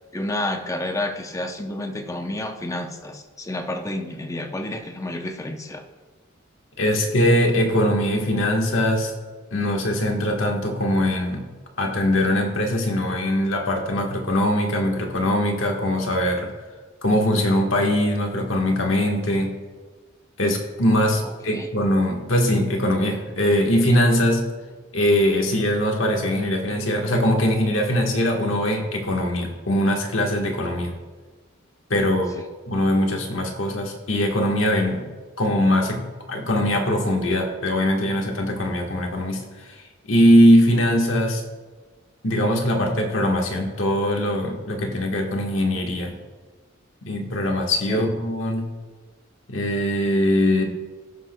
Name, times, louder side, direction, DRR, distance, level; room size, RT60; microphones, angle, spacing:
voice 1, 0.1-5.8 21.2-21.7 32.3-32.4 47.9-48.0, left 1 dB, 15° left, 5 dB, 0.7 m, -30 dB
voice 2, 6.8-9.1 9.5-11.4 11.8-16.5 17.0-19.6 20.4-24.5 24.9-30.9 31.9-32.3 32.7-35.0 35.4-36.0 36.3-39.7 40.1-41.4 42.2-46.1 47.0-48.7 49.5-50.6, left 1 dB, 70° left, 1 dB, 1.4 m, -21 dB
17.0 x 5.9 x 2.3 m, 1.4 s
head